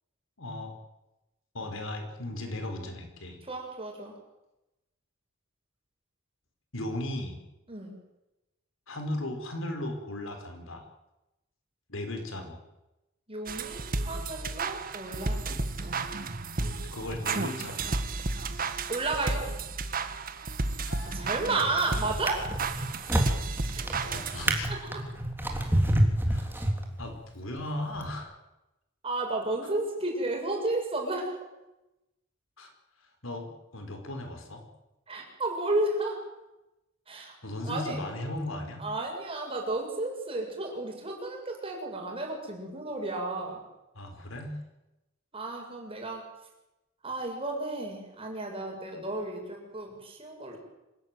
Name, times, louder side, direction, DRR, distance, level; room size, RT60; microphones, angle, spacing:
voice 1, 0.4-0.7 1.5-3.4 6.7-7.4 8.9-10.8 11.9-12.6 15.5-15.6 16.6-17.9 20.9-21.3 24.0-24.7 26.3-26.5 27.0-28.4 32.6-32.7 33.2-34.6 37.4-38.8 43.9-44.6, left 1 dB, 75° left, 5 dB, 5.1 m, -36 dB
voice 2, 3.5-4.2 7.7-7.9 13.3-15.4 15.8-15.9 18.9-19.5 21.0-22.5 23.7-23.9 24.7-24.8 29.0-31.3 35.1-36.2 37.1-37.3 37.6-38.0 38.8-43.6 45.3-46.2 47.0-50.6, right 2 dB, 30° right, 1 dB, 7.4 m, -32 dB
sound 1, 13.5-24.8, right 3 dB, 45° right, 1.7 m, -33 dB
Drawer open or close, 21.1-21.5 22.1-27.2 27.9-28.1, right 1 dB, 10° right, 3.5 m, -28 dB
26.5 x 17.0 x 9.4 m, 0.95 s
head